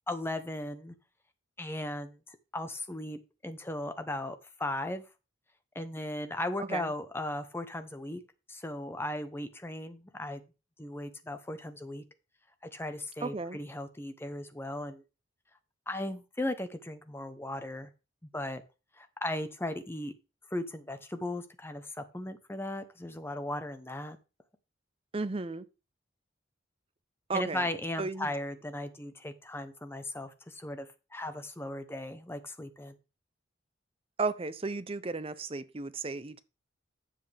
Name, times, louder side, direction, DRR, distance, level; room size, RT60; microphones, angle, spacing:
voice 1, 0.1-0.9 1.6-5.0 5.7-8.2 8.5-10.4 10.8-12.0 12.6-15.0 15.9-17.9 18.3-18.6 19.0-20.1 20.5-24.2 27.3-33.0, left 1 dB, 10° left, 0.8 m, -37 dB
voice 2, 6.6-6.9 13.2-13.6 25.1-25.6 27.3-27.7 28.0-28.3 34.2-36.4, right 3 dB, 30° right, 0.6 m, -34 dB
9.1 x 7.6 x 3.4 m
head